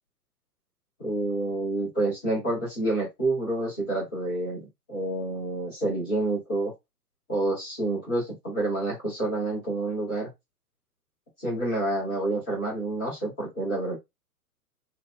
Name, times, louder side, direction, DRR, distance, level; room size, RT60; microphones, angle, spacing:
voice 1, 1.0-6.7 7.3-10.3 11.4-14.0, right 2 dB, 5° left, -8 dB, 0.3 m, -28 dB
3.9 x 2.0 x 3.7 m, 0.20 s
figure-of-eight pair, 110°, 46 cm